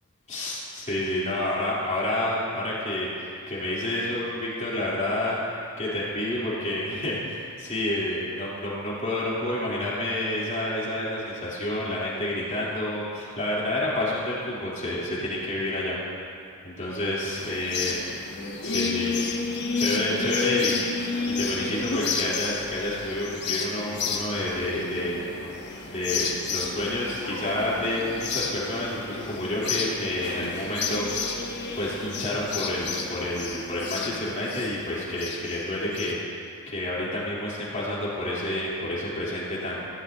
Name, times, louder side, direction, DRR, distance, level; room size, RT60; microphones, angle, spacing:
voice 1, 0.3-5.4 5.8-16.0 16.6-18.1 18.6-19.2 19.7-20.8 21.3-25.2 25.9-31.1 31.8-39.9, left 1 dB, 35° left, -7 dB, 3.2 m, -29 dB
sound 1, 17.4-36.1, left 4 dB, 55° left, 1.1 m, -31 dB
16.0 x 15.0 x 2.7 m, 2.4 s
head